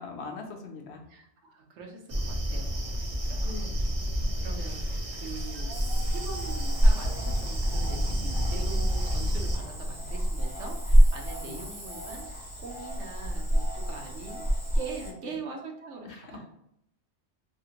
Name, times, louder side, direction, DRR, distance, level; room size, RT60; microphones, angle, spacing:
voice 1, 0.0-1.0 3.4-3.8 11.4-11.6 15.2-15.4 16.0-16.5, left 4 dB, 70° left, 3 dB, 0.8 m, -41 dB
voice 2, 1.1-2.0 2.3-3.7 4.4-14.4 14.7-16.5, right 4 dB, 85° right, 1 dB, 1.0 m, -43 dB
sound 1, 2.1-9.6, equal, 40° right, 0.5 m, -30 dB
Cricket / Frog, 5.7-15.1, equal, 20° left, 1.5 m, -27 dB
2.8 x 2.8 x 2.4 m, 0.76 s
omnidirectional pair, 1.2 m